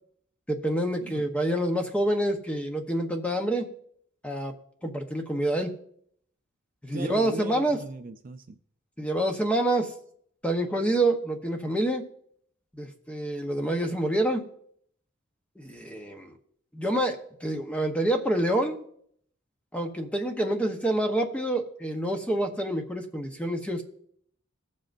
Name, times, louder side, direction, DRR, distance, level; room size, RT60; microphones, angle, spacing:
voice 1, 0.5-3.7 4.2-4.5 4.8-5.7 6.8-7.8 9.0-9.9 10.4-12.0 12.8-14.4 15.6-16.3 16.7-18.8 19.7-23.8, right 1 dB, 5° left, 4 dB, 1.0 m, -27 dB
voice 2, 6.9-8.6, right 2 dB, 40° right, 8 dB, 0.4 m, -38 dB
20.0 x 7.5 x 2.6 m, 0.66 s
head